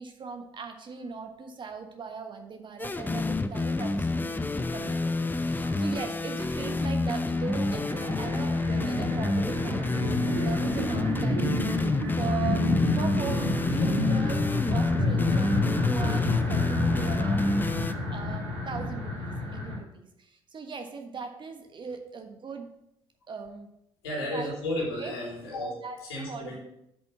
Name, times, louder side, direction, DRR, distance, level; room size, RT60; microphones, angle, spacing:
voice 1, 0.0-12.7 12.9-17.6 18.1-22.7 23.3-23.7 24.3-24.5 25.0-25.1 25.8-26.0 26.3-26.5, right 5 dB, 35° right, 5 dB, 1.2 m, -39 dB
sound 1, 2.8-17.9, left 2 dB, 15° left, 0.6 m, -28 dB
sound 2, 7.4-19.8, left 2 dB, 70° right, 2.1 m, -29 dB
voice 2, 24.0-25.7 26.0-26.6, left 1 dB, 75° left, -4 dB, 3.1 m, -33 dB
7.8 x 5.3 x 5.6 m, 0.80 s
figure-of-eight pair, 50°, 13 cm